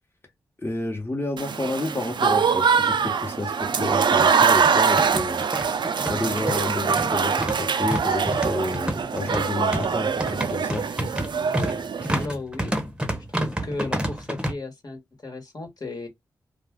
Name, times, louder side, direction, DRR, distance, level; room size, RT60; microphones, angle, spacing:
voice 1, 0.6-5.4 6.1-10.9, left 2 dB, 25° left, 1.0 m, -30 dB
Applause / Crowd, 1.4-12.3, right 6 dB, 65° right, 0.4 m, -23 dB
sound 1, 2.5-2.6 2.9-3.0 3.8-14.5, equal, 10° right, 0.8 m, -30 dB
voice 2, 12.1-12.7 13.2-16.1, left 2 dB, 50° left, 1.3 m, -35 dB
2.4 x 2.3 x 3.5 m
cardioid pair, 50°, 8 cm